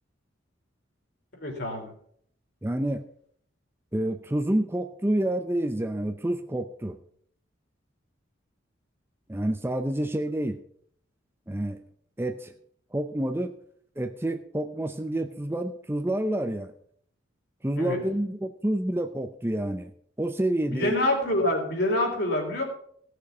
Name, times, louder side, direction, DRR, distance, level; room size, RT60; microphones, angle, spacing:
voice 1, 1.4-1.9 17.8-18.0 20.7-22.6, left 1 dB, 55° left, 1 dB, 3.4 m, -26 dB
voice 2, 2.6-3.0 3.9-7.0 9.3-10.6 11.5-11.8 12.2-12.5 12.9-13.5 14.0-16.7 17.6-19.9 20.2-21.0, right 1 dB, 10° right, 7 dB, 0.5 m, -28 dB
16.0 x 6.7 x 5.6 m, 0.64 s
head